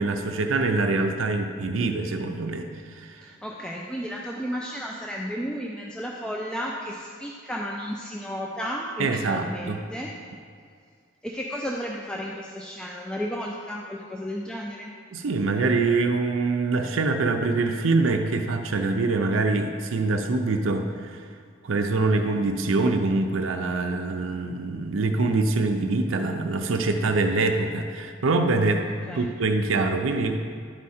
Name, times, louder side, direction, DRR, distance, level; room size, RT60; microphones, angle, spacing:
voice 1, 0.0-3.1 9.0-9.8 15.1-21.2 21.6-28.9 29.2-30.4, right 3 dB, 85° right, 5 dB, 0.6 m, -24 dB
voice 2, 3.2-10.1 11.2-14.9 29.1-29.3, equal, 5° left, -2 dB, 0.4 m, -33 dB
11.0 x 4.8 x 4.3 m, 2.1 s
head